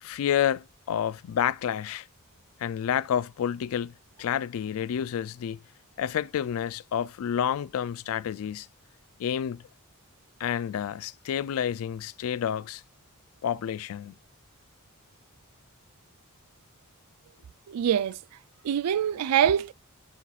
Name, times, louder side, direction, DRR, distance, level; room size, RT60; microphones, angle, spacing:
voice 1, 0.0-2.1 2.6-5.6 6.0-8.7 9.2-9.6 10.4-12.8 13.4-14.1, left 9 dB, 65° left, 0.3 m, -29 dB
voice 2, 17.7-18.2 18.6-19.7, right 9 dB, 80° right, 0.3 m, -24 dB
12.0 x 4.1 x 2.4 m
head